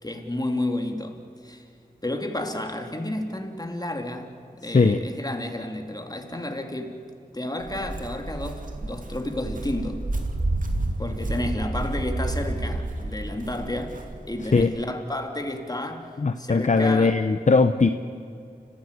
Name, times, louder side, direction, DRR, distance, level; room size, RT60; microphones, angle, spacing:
voice 1, 0.0-1.2 1.4-1.6 2.0-4.3 4.6-7.0 7.3-10.0 11.0-14.0 14.3-17.2, left 1 dB, 25° left, 4 dB, 2.9 m, -31 dB
Walk footsteps, 7.6-14.6, right 2 dB, 55° right, 2.5 m, -30 dB
voice 2, 16.2-17.9, left 4 dB, 50° left, 9 dB, 0.9 m, -19 dB
30.0 x 15.5 x 8.3 m, 2.4 s
wide cardioid pair, 55°, 16 cm